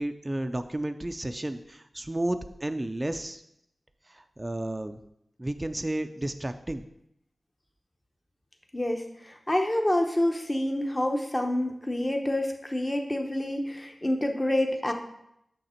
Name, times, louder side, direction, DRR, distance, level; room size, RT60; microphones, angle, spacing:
voice 1, 0.0-3.4 4.1-5.0 5.4-6.8, right 1 dB, 25° right, 8 dB, 0.4 m, -32 dB
voice 2, 8.7-14.9, left 1 dB, 25° left, 3 dB, 0.8 m, -27 dB
6.5 x 5.9 x 4.3 m, 0.79 s
wide cardioid pair, 60°, 0 cm